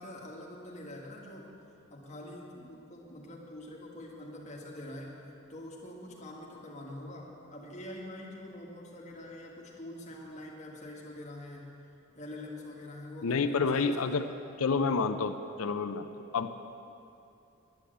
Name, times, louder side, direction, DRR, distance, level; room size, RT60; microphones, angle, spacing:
voice 1, 0.0-1.6 1.9-5.2 5.5-11.7 12.1-14.1, left 1 dB, 30° left, -3 dB, 1.8 m, -45 dB
voice 2, 13.2-14.3 14.6-16.1 16.3-16.5, left 4 dB, 75° left, 9 dB, 0.5 m, -29 dB
10.5 x 10.0 x 7.9 m, 2.7 s
head